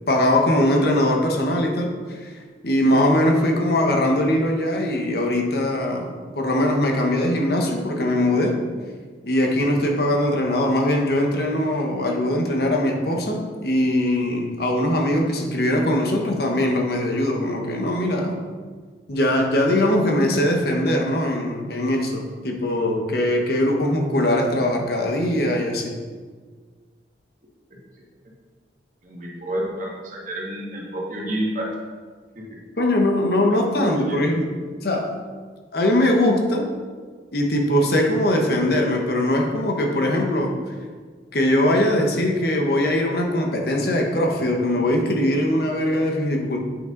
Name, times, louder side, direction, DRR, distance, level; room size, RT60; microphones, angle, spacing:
voice 1, 0.1-2.3 2.6-6.1 6.4-8.6 9.2-18.4 19.1-25.9 32.8-34.5 34.8-35.2 35.7-36.7 37.3-40.5 41.3-46.6, left 1 dB, 60° left, 1 dB, 1.2 m, -21 dB
voice 2, 29.0-31.7 32.4-32.5 33.5-34.2, right 1 dB, 45° right, -3 dB, 1.8 m, -30 dB
8.5 x 6.2 x 3.9 m, 1.5 s
head